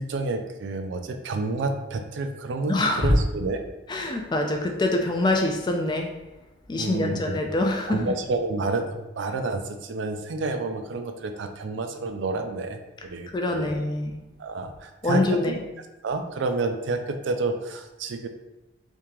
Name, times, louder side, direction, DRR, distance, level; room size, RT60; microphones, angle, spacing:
voice 1, 0.0-3.6 6.7-7.3 7.9-13.7 14.4-15.6 16.0-18.3, right 3 dB, 75° right, 6 dB, 0.4 m, -29 dB
voice 2, 2.7-3.1 3.9-6.1 6.7-8.0 13.3-14.2 15.0-15.6, left 2 dB, 25° left, 2 dB, 0.3 m, -25 dB
3.5 x 2.8 x 3.0 m, 1.0 s
head